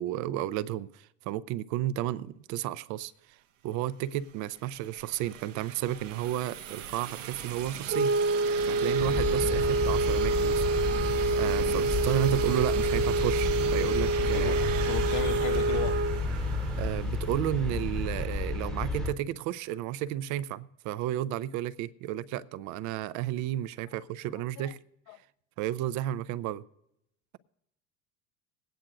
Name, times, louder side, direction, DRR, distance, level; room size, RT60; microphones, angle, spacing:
voice 1, 0.0-3.4 3.6-8.1 8.7-10.6 11.3-14.6 16.8-24.8 25.6-26.6, right 12 dB, 50° right, 0.5 m, -32 dB
sound 1, 4.0-17.8, right 8 dB, 85° right, 0.9 m, -39 dB
sound 2, 7.9-16.3, right 2 dB, 35° right, 1.0 m, -27 dB
sound 3, 9.0-19.1, left 2 dB, ahead, 1.1 m, -32 dB
voice 2, 14.3-16.0 24.6-24.7 25.1-25.2, left 12 dB, 50° left, 0.6 m, -36 dB
20.5 x 9.0 x 2.6 m
hypercardioid pair, 70°, 37 cm